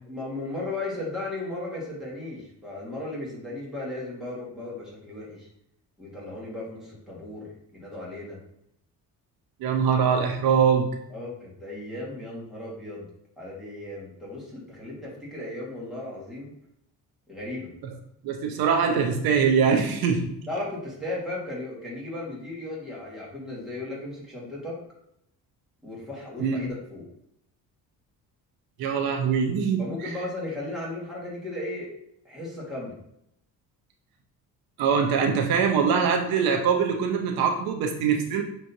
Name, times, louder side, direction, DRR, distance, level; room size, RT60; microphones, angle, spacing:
voice 1, 0.1-5.5 6.0-8.4 11.1-13.1 13.4-16.5 17.3-17.7 20.5-24.8 25.8-27.0 29.8-31.9 32.2-32.9, left 2 dB, ahead, -6 dB, 1.6 m, -36 dB
voice 2, 9.6-10.9 18.2-20.3 26.4-26.6 28.8-30.1 34.8-38.4, right 6 dB, 85° right, 3 dB, 0.8 m, -23 dB
6.1 x 3.1 x 2.7 m, 0.76 s
cardioid pair, 155°, 35 cm